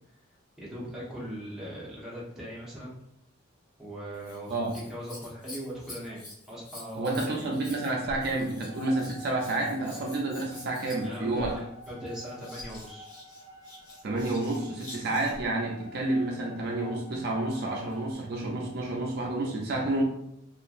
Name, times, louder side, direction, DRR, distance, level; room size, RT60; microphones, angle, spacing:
voice 1, 0.6-2.9 3.8-6.2 6.5-7.5 11.0-13.1, equal, 5° right, -7 dB, 0.8 m, -40 dB
Scissors, 4.1-15.5 17.4-18.1 18.8-18.9, left 1 dB, 40° left, 1.3 m, -47 dB
voice 2, 6.9-11.5 14.0-20.0, right 2 dB, 50° right, 0 dB, 0.4 m, -30 dB
sound 1, 8.6-18.1, left 3 dB, 70° left, 1.0 m, -48 dB
2.9 x 2.4 x 2.4 m, 0.77 s
head